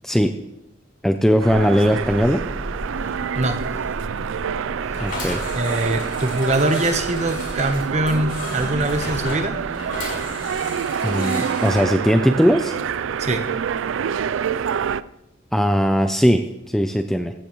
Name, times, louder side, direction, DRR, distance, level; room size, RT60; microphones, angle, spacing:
voice 1, 0.0-0.4 1.0-2.4 5.0-5.4 11.0-12.8 15.5-17.3, equal, ahead, 6 dB, 0.4 m, -19 dB
Sliding door, 1.4-10.9, equal, 15° right, 2.0 m, -36 dB
sound 1, 1.4-15.0, right 7 dB, 80° right, 0.4 m, -27 dB
sound 2, 4.9-11.8, left 2 dB, 45° left, 5.7 m, -34 dB
voice 2, 5.5-9.6 13.2-13.5, right 1 dB, 35° right, 7 dB, 1.0 m, -23 dB
15.5 x 13.5 x 3.1 m, 0.90 s
head